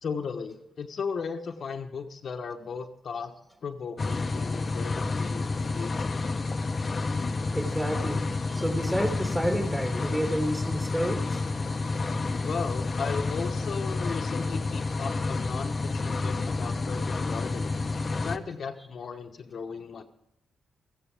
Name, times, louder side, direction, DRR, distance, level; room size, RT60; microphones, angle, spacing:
voice 1, 0.0-3.3 3.6-6.1 12.4-17.8 18.1-20.0, left 5 dB, 60° left, 5 dB, 1.0 m, -36 dB
washing machine spinning medium, 4.0-18.4, left 3 dB, 40° left, 0.8 m, -30 dB
voice 2, 7.5-8.2 8.5-11.4, equal, 10° right, 3 dB, 2.5 m, -29 dB
14.5 x 14.5 x 3.5 m, 0.81 s
cardioid pair, 70°, 0 cm